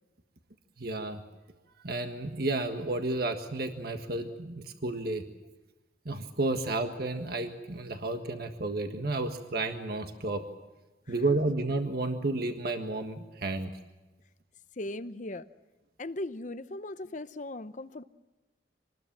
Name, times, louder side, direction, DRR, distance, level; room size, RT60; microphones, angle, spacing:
voice 1, 0.8-1.2 1.8-5.2 6.0-10.4 11.1-13.7, right 2 dB, 55° right, 6 dB, 1.6 m, -31 dB
voice 2, 14.8-15.5 16.0-18.0, left 2 dB, 40° left, 12 dB, 0.8 m, -38 dB
26.0 x 20.5 x 7.5 m, 1.2 s
head